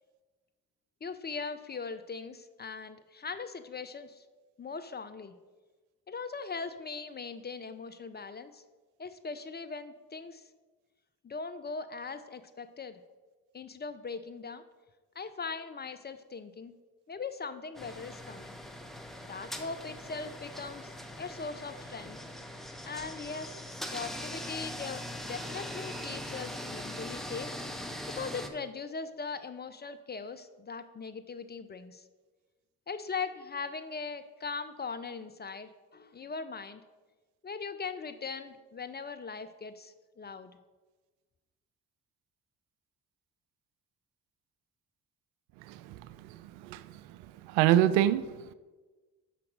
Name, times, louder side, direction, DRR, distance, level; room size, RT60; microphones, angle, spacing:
voice 1, 1.0-4.2 4.6-5.3 6.1-8.6 9.0-10.4 11.2-13.0 13.5-14.6 15.2-16.8 17.1-18.6 19.3-22.2 22.8-23.6 23.9-27.5 28.1-32.0 32.9-36.8 37.4-40.5, left 4 dB, 20° left, 0.5 m, -40 dB
sound 1, 17.7-28.5, left 1 dB, ahead, 0.8 m, -41 dB
voice 2, 45.6-48.5, right 12 dB, 70° right, 0.5 m, -28 dB
5.9 x 5.0 x 6.0 m
hypercardioid pair, 45°, 46 cm